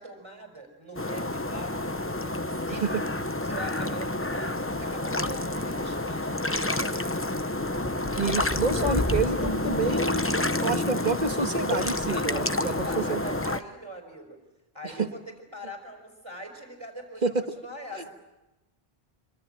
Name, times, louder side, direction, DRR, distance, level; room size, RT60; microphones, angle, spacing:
voice 1, 0.0-3.1 3.4-6.9 12.1-14.4 14.7-18.1, right 1 dB, 25° right, 5 dB, 5.1 m, -42 dB
sound 1, 1.0-13.6, left 2 dB, 15° left, 0.8 m, -29 dB
voice 2, 2.7-3.0 8.2-10.2 10.6-13.2 14.8-15.1 17.2-17.4, right 4 dB, 45° right, 8 dB, 1.6 m, -28 dB
26.5 x 25.5 x 8.9 m, 0.99 s
omnidirectional pair, 1.0 m